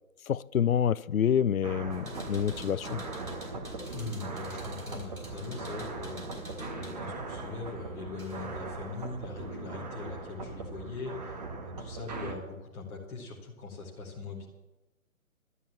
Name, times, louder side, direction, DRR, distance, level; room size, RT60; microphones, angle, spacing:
voice 1, 0.3-3.0, left 8 dB, 75° left, 21 dB, 0.5 m, -27 dB
sound 1, 1.6-12.4, right 3 dB, 30° right, 1.4 m, -40 dB
sound 2, 1.9-8.6 9.0-9.8, equal, 85° right, 4.6 m, -45 dB
voice 2, 3.9-6.4 6.7-14.5, left 3 dB, 5° left, -2 dB, 0.9 m, -41 dB
12.5 x 9.9 x 7.1 m, 1.0 s
figure-of-eight pair, 145°, 42 cm